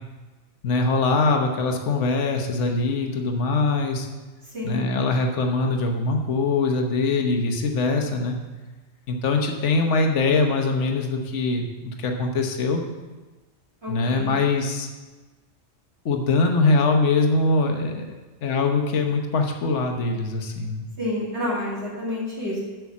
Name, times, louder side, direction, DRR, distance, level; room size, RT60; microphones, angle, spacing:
voice 1, 0.6-4.1 4.6-8.4 9.1-12.8 13.9-14.9 16.0-18.1 18.4-20.8, left 3 dB, 65° left, 3 dB, 1.3 m, -22 dB
voice 2, 13.8-14.3 21.0-22.6, left 1 dB, 55° right, -8 dB, 2.9 m, -29 dB
8.0 x 6.0 x 7.2 m, 1.2 s
omnidirectional pair, 1.3 m